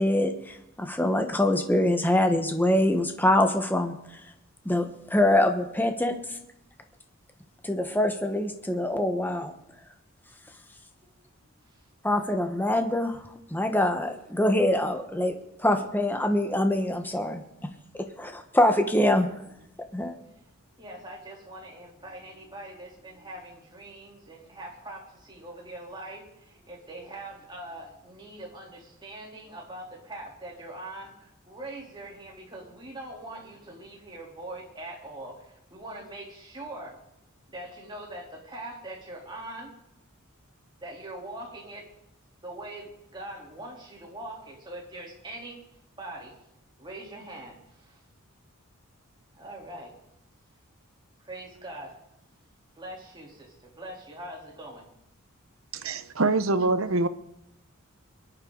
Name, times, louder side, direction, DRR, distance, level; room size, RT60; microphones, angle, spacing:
voice 1, 0.0-3.9 4.6-6.1 7.6-9.5 12.0-13.2 13.5-17.4 18.2-19.3 19.9-20.1, left 1 dB, 10° left, 6 dB, 1.2 m, -24 dB
voice 2, 11.0-11.8 19.8-20.0 20.3-37.0 37.5-39.8 40.8-41.9 42.4-45.6 46.0-46.4 46.8-48.0 49.4-49.9 51.2-52.0 52.8-54.9, right 1 dB, 20° right, -2 dB, 3.5 m, -42 dB
voice 3, 55.7-57.1, right 3 dB, 70° right, 11 dB, 1.0 m, -24 dB
23.0 x 11.0 x 4.0 m, 0.83 s
head